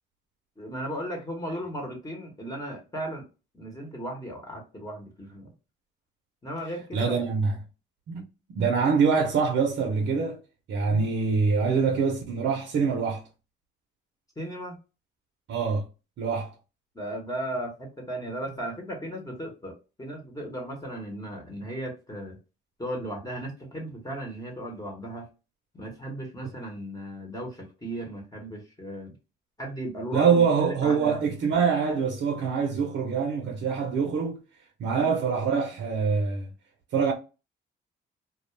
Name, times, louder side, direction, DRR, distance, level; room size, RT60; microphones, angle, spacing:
voice 1, 0.6-3.2 3.5-5.5 6.4-7.3 10.9-11.1 14.4-14.8 16.9-19.7 20.0-22.4 22.8-25.3 25.7-29.1 29.6-31.2 34.9-35.1, right 1 dB, 20° left, 1.0 m, -36 dB
voice 2, 6.9-7.6 8.1-8.2 8.6-10.4 10.7-13.2 15.5-15.9 16.2-16.6 30.1-34.4 34.8-36.5 36.9-37.1, right 5 dB, 65° right, 0.6 m, -24 dB
2.3 x 2.1 x 3.1 m
cardioid pair, 90°, 20 cm